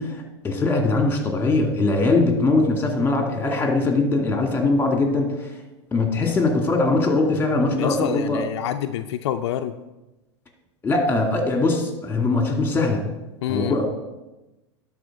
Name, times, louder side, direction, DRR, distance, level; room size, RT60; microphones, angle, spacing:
voice 1, 0.0-5.5 5.9-8.4 10.8-13.0 13.5-13.9, left 3 dB, 15° left, 2 dB, 2.2 m, -21 dB
voice 2, 7.7-9.7 13.4-13.8, left 11 dB, 70° left, 7 dB, 0.5 m, -27 dB
11.0 x 4.3 x 6.5 m, 1.0 s
hypercardioid pair, 105°, 15 cm